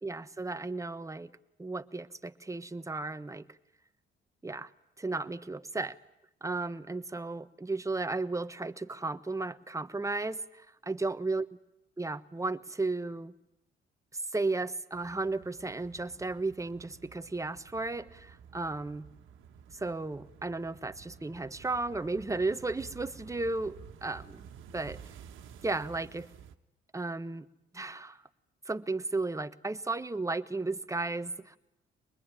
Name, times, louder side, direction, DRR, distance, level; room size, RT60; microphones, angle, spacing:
voice 1, 0.0-1.3 1.6-3.5 4.4-4.7 5.0-6.0 6.4-11.5 12.0-13.3 14.3-19.1 19.7-24.4 24.7-25.0 25.6-26.3 26.9-27.4 27.7-28.2 28.6-31.6, right 3 dB, 15° right, 11 dB, 1.3 m, -34 dB
sound 1, 14.9-26.5, right 7 dB, 80° right, 1.6 m, -52 dB
24.5 x 20.5 x 10.0 m, 0.86 s
cardioid pair, 90°, 20 cm